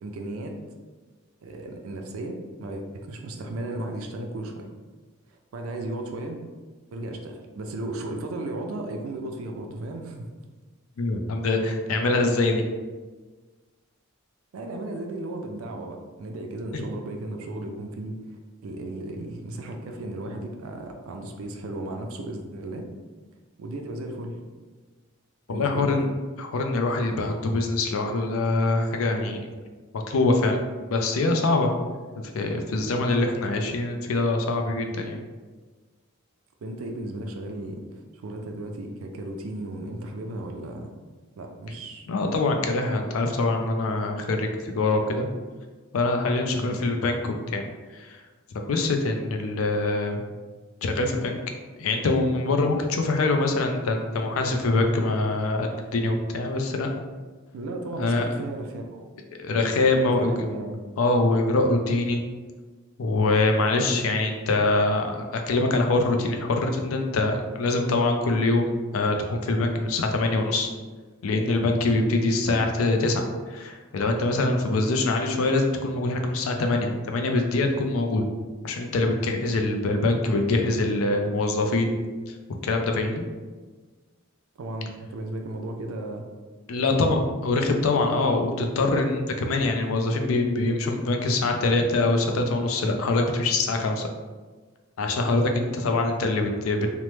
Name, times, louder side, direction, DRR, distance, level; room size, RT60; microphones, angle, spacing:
voice 1, 0.0-0.6 1.4-4.7 5.3-6.4 6.9-10.3 14.5-22.9 23.6-24.3 25.5-26.0 36.6-40.9 41.4-42.1 46.6-46.8 57.5-59.1 60.0-60.8 63.8-64.1 84.6-86.3 86.8-87.2, right 2 dB, 85° right, 3 dB, 0.4 m, -35 dB
voice 2, 11.0-12.6 16.7-16.9 25.5-26.1 26.4-29.4 29.9-30.6 30.9-31.7 32.3-35.2 42.1-45.3 45.9-47.6 47.9-48.2 48.7-50.2 50.8-51.4 51.8-56.9 58.0-58.2 59.4-60.5 61.0-62.2 63.0-70.7 71.2-78.3 78.6-81.9 82.3-82.4 82.6-83.2 86.7-94.1 95.0-97.0, left 2 dB, 85° left, 4 dB, 0.4 m, -24 dB
3.0 x 2.0 x 3.1 m, 1.4 s
head